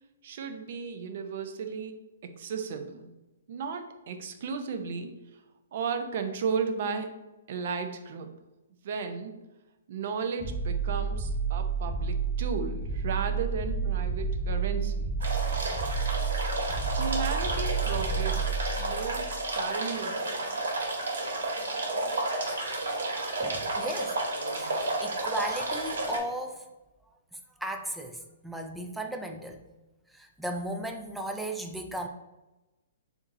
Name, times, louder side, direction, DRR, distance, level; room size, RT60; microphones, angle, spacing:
voice 1, 0.2-2.0 2.2-3.1 3.5-5.2 5.7-7.1 7.5-8.3 8.8-9.3 9.9-15.1 17.0-20.5, right 5 dB, 50° right, 6 dB, 0.6 m, -34 dB
sound 1, 10.4-19.5, right 5 dB, 25° right, 1.3 m, -30 dB
sound 2, 15.2-26.2, right 2 dB, 80° right, 1.4 m, -31 dB
voice 2, 23.1-24.2 24.5-26.7 27.3-29.6 30.1-32.1, right 1 dB, 5° right, 3 dB, 0.4 m, -36 dB
7.0 x 2.6 x 2.6 m, 1.0 s
hypercardioid pair, 160°, 0 cm